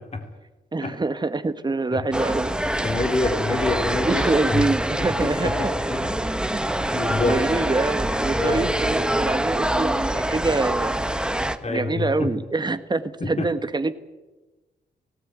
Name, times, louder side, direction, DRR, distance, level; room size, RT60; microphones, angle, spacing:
voice 1, 0.7-3.0 4.0-5.5 6.5-10.9 11.7-14.0, right 3 dB, 25° right, 10 dB, 1.4 m, -26 dB
sound 1, 2.1-11.6, right 1 dB, 5° right, 1.3 m, -25 dB
voice 2, 2.8-4.7 5.2-6.1 6.9-7.4 8.4-8.6 11.6-12.3 13.2-13.5, left 2 dB, 35° left, 4 dB, 3.3 m, -26 dB
19.0 x 18.0 x 9.4 m, 1.1 s
wide cardioid pair, 105°, 18 cm